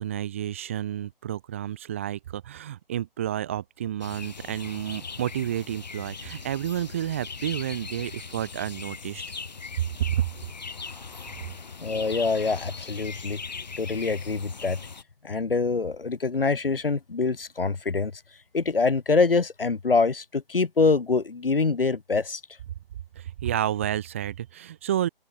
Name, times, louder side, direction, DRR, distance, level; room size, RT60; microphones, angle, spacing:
voice 1, 0.0-9.2 10.0-10.3 23.1-25.1, right 11 dB, 15° right, 1.6 m, -30 dB
sound 1, 4.0-15.0, left 5 dB, 45° left, 1.4 m, -39 dB
voice 2, 11.8-13.4 13.8-14.8 15.2-18.1 18.5-22.4, left 4 dB, 70° left, 2.0 m, -25 dB
open air
figure-of-eight pair, 170°, 30 cm